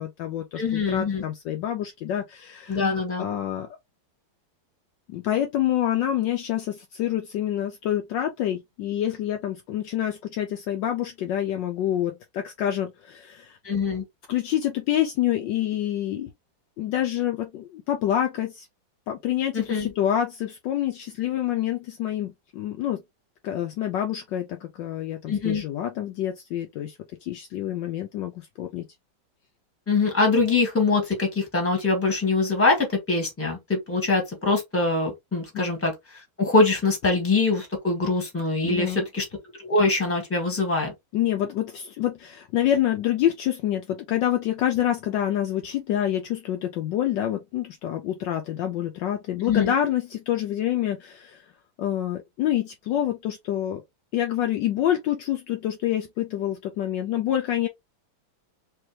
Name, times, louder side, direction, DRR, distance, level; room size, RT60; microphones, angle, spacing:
voice 1, 0.0-2.9 3.2-3.7 5.1-13.6 14.3-16.3 16.8-18.7 19.1-23.0 23.4-27.0 27.2-28.8 35.5-35.7 38.6-39.0 41.1-51.4 51.8-53.8 54.1-57.7, left 11 dB, 75° left, 1.1 m, -27 dB
voice 2, 0.6-1.2 2.7-3.3 13.6-14.0 19.5-19.9 25.3-25.6 29.9-35.9 36.4-39.2 39.6-40.9 49.4-49.7, left 3 dB, 5° left, 1.4 m, -23 dB
3.3 x 3.3 x 3.1 m
omnidirectional pair, 2.2 m